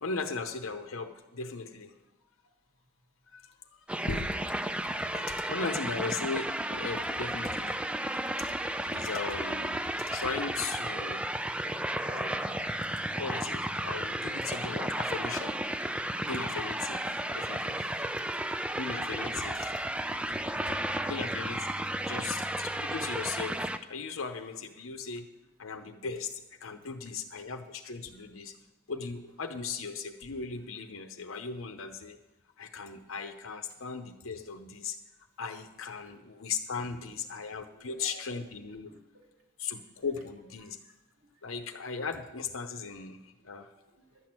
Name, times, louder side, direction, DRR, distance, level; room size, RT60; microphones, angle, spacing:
voice 1, 0.0-1.9 3.3-4.6 5.1-7.8 8.4-8.5 8.9-11.3 12.0-15.6 16.2-17.9 18.8-19.7 21.1-21.7 22.1-25.3 25.6-28.6 28.9-32.2 32.6-35.0 35.4-38.9 39.6-40.8 41.4-43.7, left 5 dB, 85° left, 6 dB, 0.8 m, -38 dB
sound 1, 3.9-23.8, right 1 dB, 5° right, 0.3 m, -33 dB
voice 2, 20.6-21.3 37.0-37.1 37.8-38.4 38.8-39.3 40.6-40.9 43.7-44.3, right 1 dB, 75° right, 0 dB, 3.1 m, -56 dB
11.5 x 6.1 x 8.8 m, 1.0 s
head